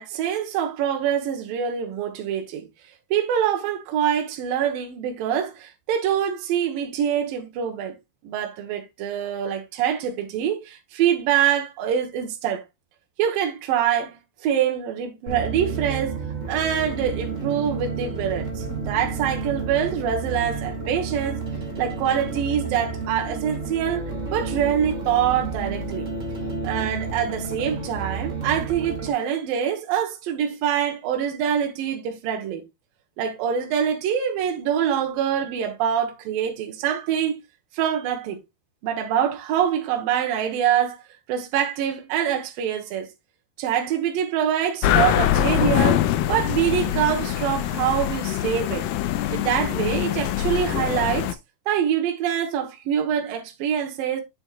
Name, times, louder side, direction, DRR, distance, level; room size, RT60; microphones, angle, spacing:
voice 1, 0.0-2.7 3.1-8.0 8.2-12.6 13.2-16.2 16.5-21.4 21.8-24.0 24.3-26.1 26.6-32.6 33.2-37.4 37.7-38.4 38.8-41.0 41.3-43.1 43.6-48.9 49.3-51.4 51.7-54.2, right 9 dB, 70° right, 2.8 m, -25 dB
sound 1, 15.3-29.1, right 4 dB, 25° right, 2.2 m, -31 dB
sound 2, 44.8-51.3, left 12 dB, 85° left, 1.9 m, -23 dB
8.2 x 7.0 x 2.4 m
omnidirectional pair, 4.4 m